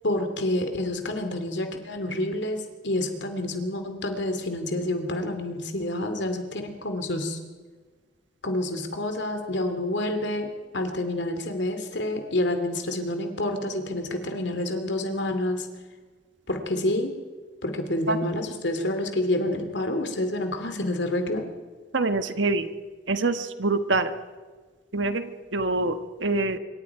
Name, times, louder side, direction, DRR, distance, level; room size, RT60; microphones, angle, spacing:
voice 1, 0.0-7.4 8.4-15.7 16.5-17.2 17.6-21.5, left 1 dB, 65° left, 6 dB, 2.5 m, -28 dB
voice 2, 21.9-22.7 23.1-24.1 24.9-26.6, right 3 dB, 75° right, 9 dB, 1.4 m, -25 dB
25.5 x 24.0 x 4.8 m, 1.4 s
head